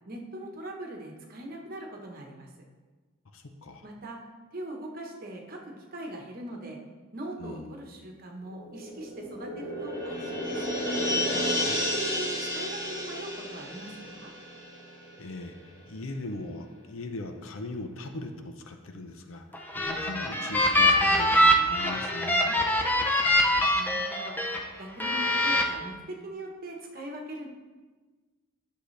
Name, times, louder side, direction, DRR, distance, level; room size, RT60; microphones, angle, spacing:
voice 1, 0.1-2.5 3.8-4.2 4.5-6.8 7.1-10.6 11.6-14.3 23.3-24.3 24.8-27.5, right 1 dB, 45° right, 1 dB, 1.2 m, -41 dB
voice 2, 3.3-3.8 7.4-7.7 11.4-11.8 15.2-15.6 15.8-19.4 19.7-22.6, left 2 dB, 80° left, 5 dB, 0.7 m, -39 dB
sound 1, 8.5-15.5 15.8-15.9, left 1 dB, 35° left, 2.4 m, -32 dB
sound 2, 19.5-24.6 25.0-25.6, left 1 dB, 10° left, 0.6 m, -24 dB
10.0 x 6.6 x 3.3 m, 1.3 s
head